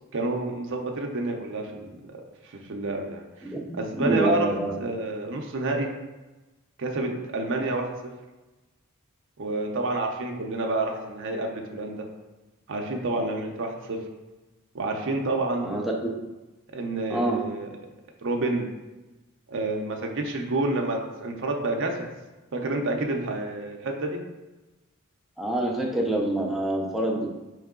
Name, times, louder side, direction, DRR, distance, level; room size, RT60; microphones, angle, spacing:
voice 1, 0.1-3.5 3.7-5.9 6.8-8.1 9.4-12.0 12.7-14.0 14.7-15.8 16.7-17.7 18.2-18.7 19.5-22.1 22.5-24.2, right 2 dB, 55° right, 1 dB, 0.6 m, -29 dB
voice 2, 3.9-4.7 15.6-16.1 17.1-17.4 25.4-27.3, right 1 dB, ahead, -1 dB, 0.5 m, -26 dB
4.6 x 3.1 x 3.7 m, 1.1 s
head